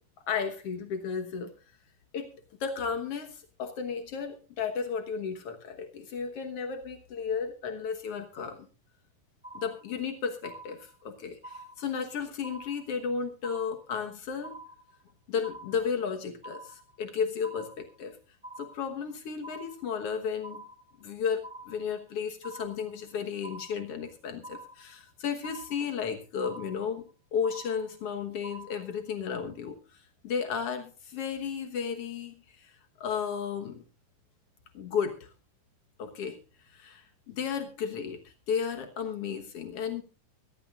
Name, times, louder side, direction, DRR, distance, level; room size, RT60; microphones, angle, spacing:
voice 1, 0.3-1.5 2.1-2.3 2.6-8.7 9.5-14.6 15.3-18.2 18.6-20.6 21.0-33.8 34.7-35.3 36.0-36.4 36.6-40.0, left 6 dB, 80° left, 5 dB, 1.3 m, -34 dB
sound 1, 9.4-10.1 10.4-11.1 11.4-12.1 12.4-13.1 13.4-14.1 14.4-15.1 15.4-16.1 16.4-17.1 17.4-18.1 18.4-19.1 19.4-20.1 20.4-21.1 21.4-22.1 22.4-23.1 23.4-24.1 24.4-25.1 25.4-26.1 26.4-27.1 27.4-28.1 28.4-29.1, right 2 dB, ahead, 2.1 m, -46 dB
23.0 x 13.0 x 2.5 m, 0.33 s
omnidirectional pair, 4.7 m